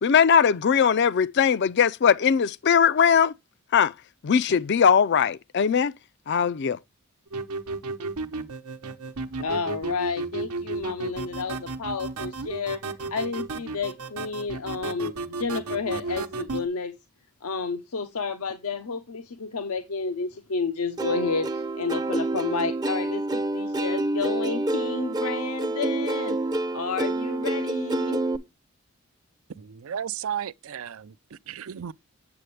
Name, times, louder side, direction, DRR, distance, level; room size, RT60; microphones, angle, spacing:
voice 1, 0.0-3.3 3.7-3.9 4.2-5.9 6.3-6.8, left 7 dB, 50° left, 0.4 m, -20 dB
sound 1, 7.3-16.7, right 3 dB, 85° right, 0.9 m, -33 dB
voice 2, 9.4-12.8 13.1-16.9 17.4-26.4 26.7-28.2, left 4 dB, 85° left, 0.8 m, -31 dB
Plucked string instrument, 21.0-28.4, right 2 dB, 20° right, 0.5 m, -28 dB
voice 3, 29.6-31.9, right 9 dB, 65° right, 0.4 m, -34 dB
7.8 x 7.6 x 3.2 m
head